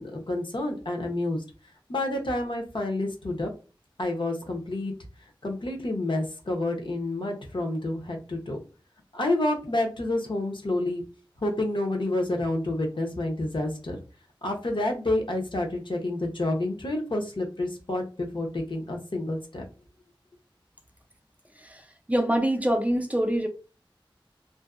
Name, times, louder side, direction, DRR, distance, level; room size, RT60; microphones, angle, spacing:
voice 1, 0.0-1.4 1.9-3.5 4.0-4.9 5.4-8.6 9.1-11.0 11.4-14.0 14.4-19.6, left 1 dB, 65° left, 0.7 m, -29 dB
voice 2, 22.1-23.5, right 1 dB, 15° right, 0.4 m, -24 dB
2.6 x 2.0 x 2.3 m
wide cardioid pair, 55°, 9 cm